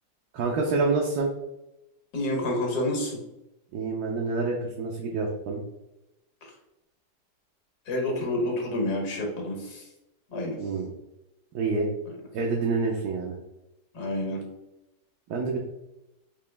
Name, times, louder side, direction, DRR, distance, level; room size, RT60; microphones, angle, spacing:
voice 1, 0.3-1.3 3.7-5.6 10.6-10.9 11.5-11.9 12.3-13.4 15.3-15.6, right 4 dB, 70° right, 0 dB, 1.2 m, -27 dB
voice 2, 2.1-3.2 7.9-9.8 10.3-10.6 13.9-14.4, left 1 dB, 65° left, 0 dB, 1.8 m, -28 dB
5.0 x 2.9 x 3.3 m, 0.92 s
omnidirectional pair, 1.8 m